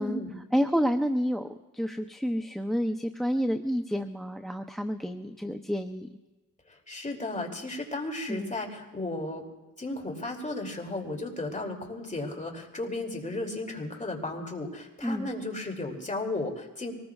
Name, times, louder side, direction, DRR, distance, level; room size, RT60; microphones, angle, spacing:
voice 1, 0.0-0.4 6.7-9.4 9.8-16.9, left 2 dB, 20° left, 1 dB, 2.7 m, -34 dB
voice 2, 0.5-1.5 1.7-6.1 8.3-8.5 15.0-15.3, equal, ahead, 6 dB, 0.6 m, -29 dB
24.0 x 19.5 x 2.4 m, 1.2 s
wide cardioid pair, 110°, 33 cm